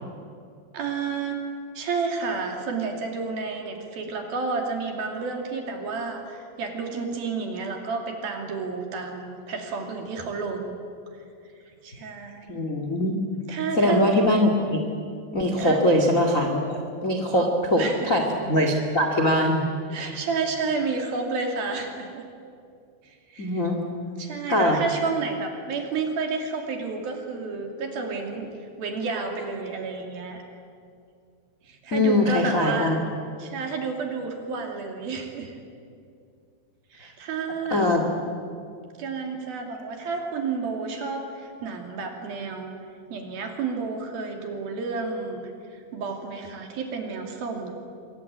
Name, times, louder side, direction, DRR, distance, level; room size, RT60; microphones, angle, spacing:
voice 1, 0.7-1.4 1.8-10.8 11.8-12.5 13.5-14.0 15.6-15.8 17.3-17.5 17.8-18.1 19.9-22.2 23.0-23.6 24.2-28.5 28.8-30.4 31.6-33.0 33.4-35.5 36.9-37.9 39.0-42.7 43.1-47.7, right 4 dB, 55° right, 3 dB, 4.1 m, -31 dB
voice 2, 12.5-13.2 13.7-14.9 15.3-16.6 17.0-19.7 20.0-20.2 23.4-23.8 24.5-24.8 31.9-33.0 37.7-38.1, left 1 dB, 45° left, 3 dB, 1.0 m, -22 dB
25.0 x 23.0 x 9.5 m, 2.4 s
omnidirectional pair, 5.7 m